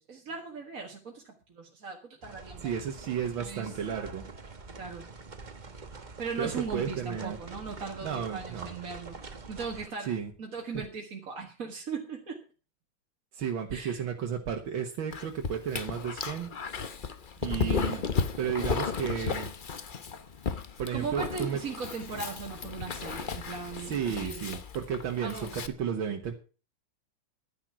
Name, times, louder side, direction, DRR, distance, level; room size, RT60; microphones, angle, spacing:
voice 1, 0.1-2.7 3.4-3.7 4.8-5.1 6.2-9.2 9.5-10.1 10.4-12.4 13.7-14.0 17.5-17.8 20.9-24.5 25.2-25.5, right 5 dB, 45° right, 0 dB, 2.1 m, -38 dB
sound 1, 2.2-9.9, right 4 dB, 30° right, 1.0 m, -45 dB
voice 2, 2.6-4.2 6.4-7.4 8.0-8.8 10.1-10.3 13.3-16.5 17.4-18.1 18.4-19.5 20.8-21.6 23.8-26.3, right 8 dB, 80° right, 3 dB, 2.1 m, -33 dB
Dog, 15.1-25.7, left 5 dB, 45° left, 0.6 m, -34 dB
12.0 x 10.5 x 6.0 m, 0.36 s
omnidirectional pair, 2.1 m